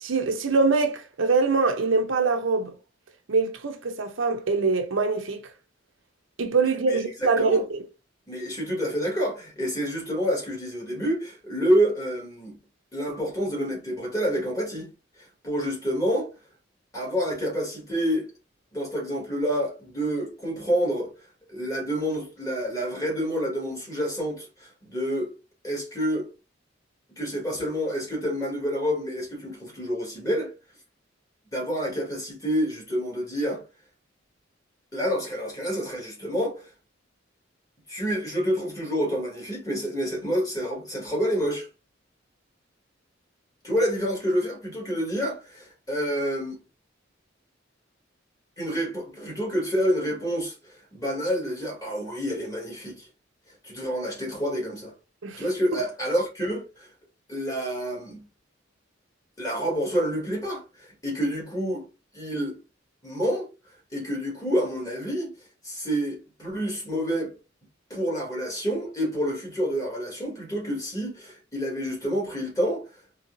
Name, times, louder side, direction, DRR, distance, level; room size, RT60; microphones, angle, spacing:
voice 1, 0.0-2.7 3.3-5.4 6.4-7.8 55.2-55.4, right 4 dB, 85° right, 0.7 m, -23 dB
voice 2, 6.9-7.6 8.3-12.6 12.9-14.9 15.4-16.3 16.9-18.3 18.7-21.1 21.5-25.3 25.6-26.2 27.2-30.5 31.5-33.6 34.9-36.7 37.9-41.7 43.6-46.6 48.6-53.1 53.6-54.9 55.4-56.9 57.3-58.2 59.4-61.8 62.1-62.5 63.0-63.5 63.9-65.3 65.6-67.3 67.9-72.8, equal, 20° left, 1.7 m, -28 dB
4.0 x 2.8 x 2.6 m
head